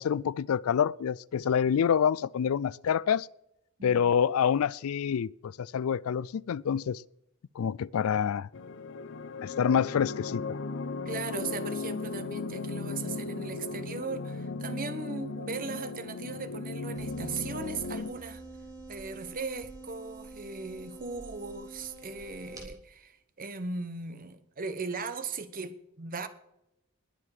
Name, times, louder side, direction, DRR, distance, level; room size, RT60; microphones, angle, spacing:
voice 1, 0.0-3.3 3.8-7.0 7.6-8.5 9.4-10.6, left 7 dB, 85° left, 0.4 m, -27 dB
voice 2, 3.8-4.1 11.0-18.4 18.9-26.3, right 4 dB, 40° right, 1.0 m, -38 dB
sound 1, 8.5-18.1, left 3 dB, 60° left, 0.7 m, -36 dB
sound 2, 16.9-22.6, right 2 dB, 15° right, 3.8 m, -46 dB
20.5 x 7.6 x 5.0 m
head